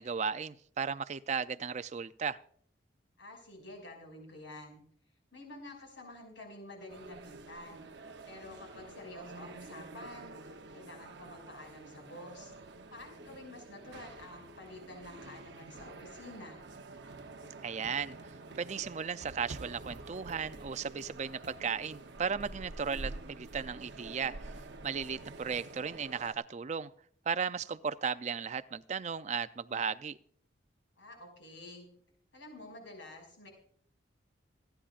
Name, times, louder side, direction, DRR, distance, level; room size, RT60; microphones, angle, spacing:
voice 1, 0.0-2.4 17.6-18.2 18.6-24.5 24.8-26.9 27.3-30.2, right 6 dB, 35° right, 12 dB, 0.4 m, -35 dB
voice 2, 3.2-4.8 5.3-7.9 8.2-12.5 12.9-16.6 31.0-31.9 32.3-33.5, left 2 dB, 80° left, 1 dB, 5.9 m, -49 dB
sound 1, 6.9-26.4, right 2 dB, 65° right, 0.8 m, -48 dB
27.5 x 10.0 x 2.4 m, 0.62 s
head